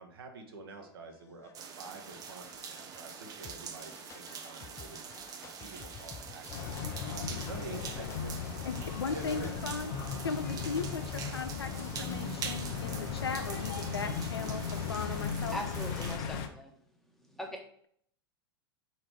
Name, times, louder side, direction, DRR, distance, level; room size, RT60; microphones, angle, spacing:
voice 1, 0.0-1.5 1.8-5.0 5.4-6.6 7.1-8.3 9.1-9.5, right 3 dB, 65° right, 3 dB, 1.3 m, -47 dB
sound 1, 0.8-16.3, left 6 dB, 20° left, 0.5 m, -54 dB
sound 2, 1.5-16.2, right 6 dB, 30° right, 0.7 m, -45 dB
sound 3, 6.5-16.5, left 6 dB, 50° left, 0.8 m, -37 dB
voice 2, 8.6-9.9 10.2-15.6, left 5 dB, 80° left, 8 dB, 0.6 m, -37 dB
voice 3, 15.5-16.7 17.3-17.6, left 1 dB, ahead, 1 dB, 1.3 m, -40 dB
5.0 x 4.3 x 4.6 m, 0.63 s
figure-of-eight pair, 95°, 13 cm